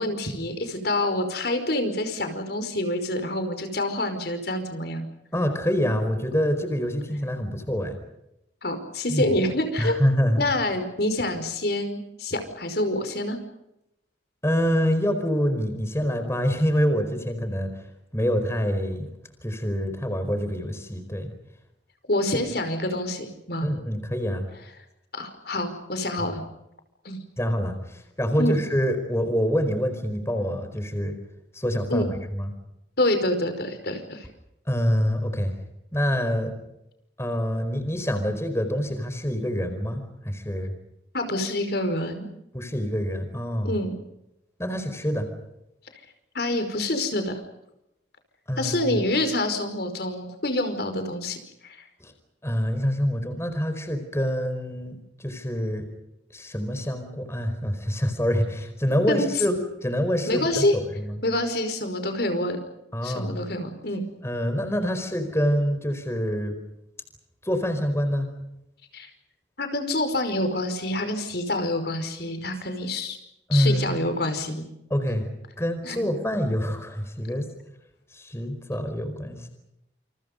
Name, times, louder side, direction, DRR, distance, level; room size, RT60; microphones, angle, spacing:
voice 1, 0.0-5.1 8.6-10.0 10.4-13.4 22.1-23.7 25.1-26.4 27.1-27.2 28.4-28.5 31.9-32.1 33.0-34.3 41.1-42.3 43.6-44.0 46.4-47.4 48.6-51.4 51.6-51.8 59.1-59.3 60.3-60.8 61.2-62.6 63.0-64.1 68.9-69.1 69.6-73.2 73.5-74.6 75.8-76.0, left 1 dB, 60° left, 8 dB, 5.2 m, -27 dB
voice 2, 5.3-8.0 9.1-9.2 9.8-10.4 14.4-17.7 18.1-19.1 19.4-21.3 23.6-24.5 27.4-31.1 31.5-32.5 34.7-35.5 35.9-36.5 37.2-40.7 42.5-43.7 44.6-45.3 48.5-49.0 52.0-52.1 52.4-55.8 56.3-61.1 62.9-63.4 64.2-66.5 67.4-68.3 73.5-74.0 74.9-75.3 75.6-77.5 78.1-79.5, equal, 15° left, 7 dB, 4.7 m, -26 dB
29.5 x 29.0 x 5.3 m, 0.86 s
head